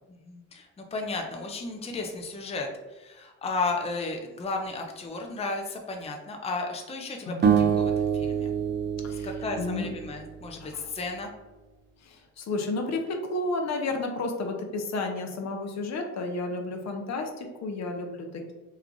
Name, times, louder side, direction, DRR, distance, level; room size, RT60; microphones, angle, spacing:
voice 1, 0.2-8.5 9.2-11.3, left 3 dB, 20° left, 2 dB, 0.5 m, -34 dB
voice 2, 7.3-7.8 9.0-9.9 10.6-10.9 12.0-18.5, left 2 dB, 60° left, 3 dB, 0.7 m, -32 dB
sound 1, 7.4-10.6, right 7 dB, 35° right, 0.5 m, -26 dB
3.1 x 2.3 x 3.7 m, 1.1 s
cardioid pair, 90°, 30 cm